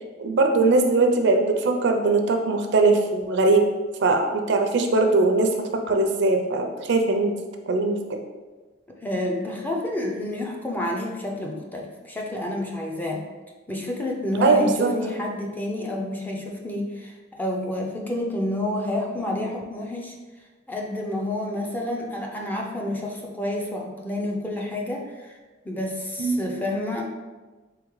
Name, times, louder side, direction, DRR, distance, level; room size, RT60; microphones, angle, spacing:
voice 1, 0.2-3.7 4.0-7.4 7.7-8.2 14.4-14.9 26.2-26.4, right 3 dB, 65° right, 4 dB, 0.5 m, -21 dB
voice 2, 9.0-13.3 13.7-20.1 20.7-25.4 25.6-27.1, left 1 dB, 10° left, -1 dB, 0.5 m, -29 dB
3.7 x 3.6 x 3.1 m, 1.3 s
head